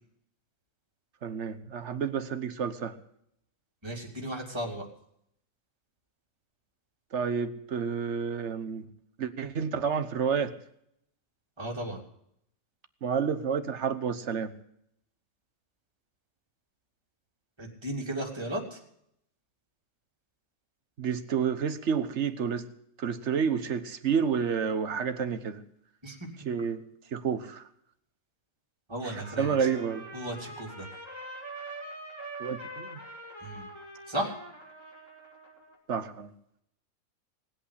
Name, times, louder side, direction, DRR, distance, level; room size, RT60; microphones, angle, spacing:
voice 1, 1.2-3.0 7.1-8.8 9.2-10.5 13.0-14.5 21.0-22.7 23.0-25.6 26.4-26.8 27.1-27.7 29.0-30.1 32.4-33.0 35.9-36.3, right 6 dB, 50° right, 11 dB, 1.3 m, -30 dB
voice 2, 3.8-4.9 11.6-12.0 17.6-18.8 26.0-26.2 28.9-29.7 30.1-30.9 33.4-33.7 34.1-34.4, right 1 dB, 15° right, -1 dB, 3.2 m, -35 dB
Trumpet, 29.0-35.8, right 1 dB, 10° left, 4.8 m, -44 dB
19.0 x 8.5 x 8.4 m, 0.73 s
omnidirectional pair, 1.6 m